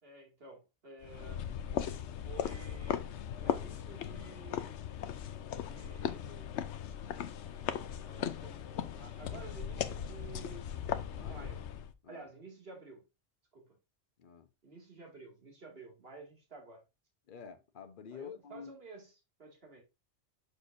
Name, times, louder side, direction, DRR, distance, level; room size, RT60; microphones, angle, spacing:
voice 1, 0.0-1.4 2.2-3.1 3.3-4.8 5.6-6.6 7.5-11.6 12.1-13.0 13.5-13.7 14.6-16.8 18.1-19.1 19.4-19.8, right 3 dB, 60° right, 2.5 m, -52 dB
sound 1, 1.0-11.9, left 9 dB, 85° left, 1.0 m, -38 dB
voice 2, 11.1-11.5 12.0-12.3 14.2-14.5 17.3-18.7, left 7 dB, 50° left, 1.0 m, -48 dB
6.9 x 6.4 x 2.6 m
omnidirectional pair, 1.2 m